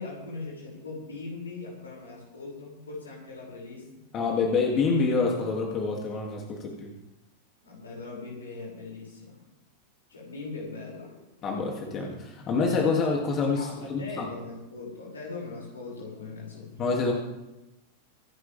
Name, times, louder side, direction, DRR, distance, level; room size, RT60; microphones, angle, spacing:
voice 1, 0.0-3.9 7.6-9.4 10.1-11.2 13.6-16.8, left 3 dB, 70° left, -3 dB, 7.1 m, -40 dB
voice 2, 4.1-6.9 11.4-14.2 16.8-17.1, left 4 dB, 30° left, -1 dB, 3.0 m, -27 dB
25.5 x 11.0 x 3.7 m, 0.97 s
figure-of-eight pair, 90°, 0 cm